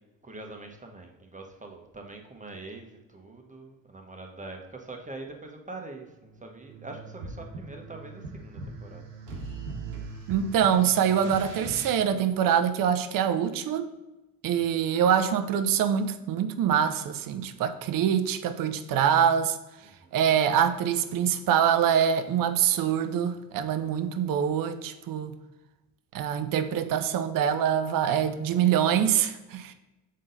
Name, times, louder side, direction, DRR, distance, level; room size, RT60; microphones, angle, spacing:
voice 1, 0.2-9.0 14.6-14.8 19.8-20.2, right 2 dB, 15° right, 1.2 m, -44 dB
sound 1, 6.1-11.9, right 3 dB, 80° right, 1.2 m, -40 dB
voice 2, 10.3-13.9 14.4-19.6 20.1-25.4 26.1-29.7, right 8 dB, 50° right, 0.7 m, -25 dB
6.3 x 3.8 x 4.0 m
hypercardioid pair, 55°, 43 cm